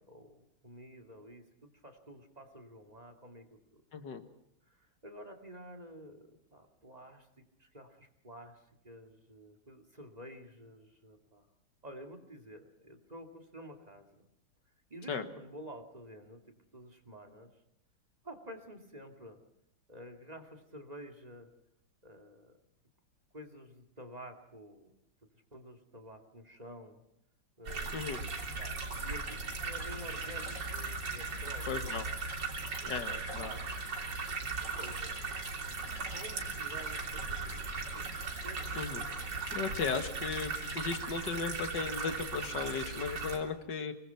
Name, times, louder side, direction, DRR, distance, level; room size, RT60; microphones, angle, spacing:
voice 1, 0.0-3.8 4.7-11.5 11.8-14.3 14.9-16.4 16.7-17.5 18.2-19.4 19.9-21.5 22.0-22.6 23.3-24.9 25.5-27.0 27.6-27.9 28.5-32.0 32.8-33.0 33.4-33.8 34.6-35.2 35.8-38.8, equal, 20° right, 7 dB, 2.6 m, -50 dB
voice 2, 3.9-4.2 15.1-15.2 27.9-28.2 31.7-32.0 32.9-33.5 38.7-39.0 39.5-43.9, left 5 dB, 75° left, 8 dB, 2.3 m, -36 dB
sound 1, 27.7-43.4, right 4 dB, 75° right, 3.8 m, -38 dB
26.0 x 20.5 x 5.9 m, 0.79 s
omnidirectional pair, 1.9 m